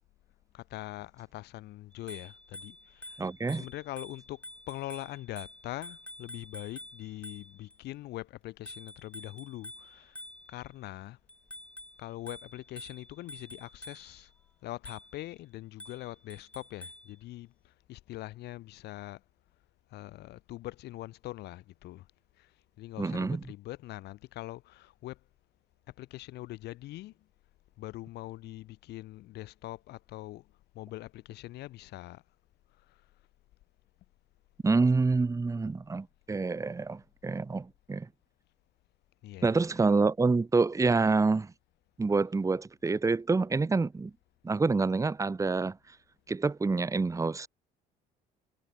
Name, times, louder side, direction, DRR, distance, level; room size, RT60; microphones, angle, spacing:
voice 1, 0.5-3.3 3.5-10.2 10.5-11.2 12.0-14.3 14.6-19.2 19.9-22.1 22.4-22.5 22.8-25.2 26.0-27.1 27.8-30.5 30.7-32.2 39.2-39.8, left 16 dB, 80° left, 3.3 m, -43 dB
Bicycle bell, 1.9-7.8 8.7-10.8 11.3-14.3 14.9-15.3 15.8-17.1, left 1 dB, 5° left, 4.1 m, -48 dB
voice 2, 3.2-3.6 23.0-23.4 34.6-38.1 39.4-41.5 42.0-44.1 44.4-45.8 46.3-47.5, right 4 dB, 20° right, 1.6 m, -27 dB
cardioid pair, 110°, 17 cm